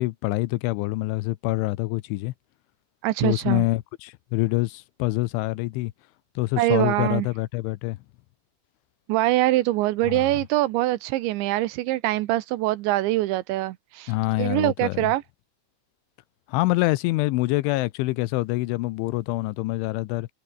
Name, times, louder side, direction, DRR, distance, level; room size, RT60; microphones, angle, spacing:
voice 1, 0.0-2.3 3.2-5.9 6.4-8.0 10.1-10.2 14.1-15.1 16.5-20.3, left 20 dB, 80° left, 3.0 m, -25 dB
voice 2, 3.0-3.7 6.6-7.3 9.1-15.2, right 17 dB, 80° right, 2.8 m, -24 dB
omnidirectional pair, 5.9 m